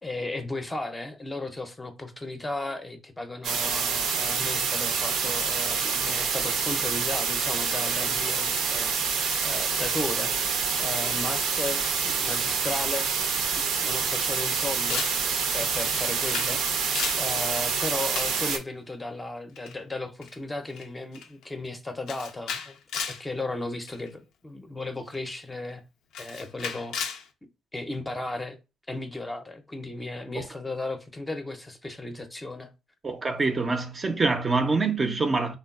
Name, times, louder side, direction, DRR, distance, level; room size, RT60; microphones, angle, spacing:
voice 1, 0.0-13.1 13.5-15.1 15.5-22.8 23.1-25.8 26.2-27.0 27.7-28.6 28.9-32.7, left 2 dB, 15° left, 0.5 m, -35 dB
sound 1, 3.4-18.6, right 6 dB, 85° right, 0.5 m, -27 dB
Camera, 14.9-15.2 15.8-16.6 16.8-17.3 18.1-18.4 19.6-19.8 20.2-20.3 20.7-20.9 21.1-21.4 22.1-23.2 23.9-24.1 25.1-25.2 26.1-27.2, left 6 dB, 85° left, 0.4 m, -34 dB
voice 2, 33.0-35.6, right 3 dB, 30° right, 0.4 m, -25 dB
3.4 x 2.2 x 2.3 m
cardioid pair, 90°, 0 cm